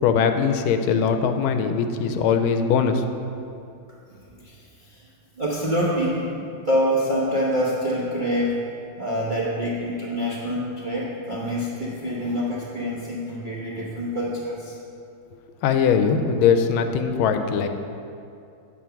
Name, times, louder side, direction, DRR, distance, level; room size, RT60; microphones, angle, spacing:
voice 1, 0.0-3.0 15.6-17.7, left 6 dB, 85° left, 7 dB, 1.4 m, -21 dB
voice 2, 4.1-5.1 5.4-8.7 9.0-14.8, equal, 45° right, -6 dB, 0.6 m, -26 dB
8.4 x 4.5 x 5.7 m, 2.5 s
omnidirectional pair, 2.3 m